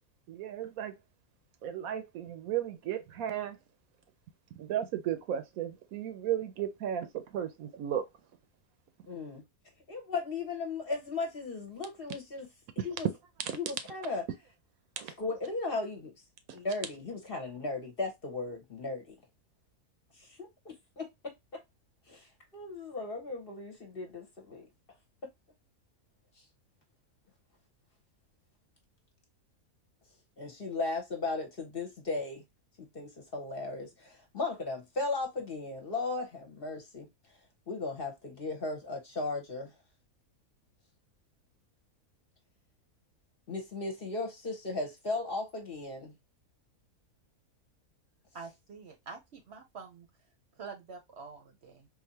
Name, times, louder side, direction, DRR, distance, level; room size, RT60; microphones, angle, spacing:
voice 1, 0.3-0.9 1.6-3.6 4.6-8.0 12.8-12.9 13.4-13.6 15.0-15.1 16.5-16.6, right 10 dB, 75° right, 1.0 m, -34 dB
voice 2, 9.1-9.4 9.9-12.5 12.8-13.1 13.5-14.2 15.2-16.1 16.5-19.1 20.1-21.6 22.1-24.7 30.4-32.4 32.8-37.1 37.7-39.7 43.5-46.1, left 3 dB, 45° left, 1.0 m, -36 dB
voice 3, 48.3-50.1 50.6-51.9, right 5 dB, 55° right, 0.9 m, -46 dB
3.9 x 2.7 x 2.7 m
omnidirectional pair, 1.6 m